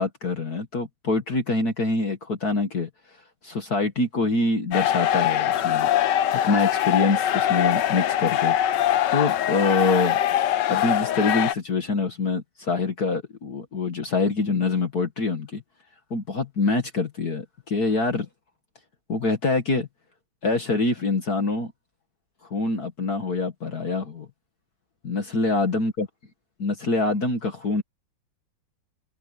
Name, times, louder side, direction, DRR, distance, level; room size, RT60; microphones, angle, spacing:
voice 1, 0.0-2.9 3.4-5.9 6.3-10.2 10.7-15.6 16.1-18.3 19.1-19.9 20.4-21.7 22.4-24.3 25.0-26.1 26.6-27.8, left 3 dB, 50° left, 2.3 m, -25 dB
sound 1, 4.7-11.5, left 11 dB, 65° left, 1.3 m, -23 dB
omnidirectional pair, 2.2 m